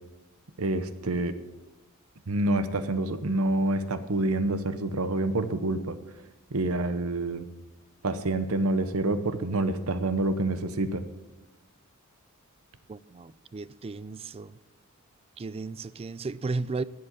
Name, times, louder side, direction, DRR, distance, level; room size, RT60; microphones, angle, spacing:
voice 1, 0.6-1.4 2.3-6.0 6.5-7.5 8.0-11.0, right 2 dB, 80° right, 12 dB, 0.9 m, -27 dB
voice 2, 12.9-14.5 15.4-16.8, right 3 dB, 25° right, 18 dB, 0.4 m, -34 dB
12.0 x 7.8 x 7.5 m, 1.0 s
head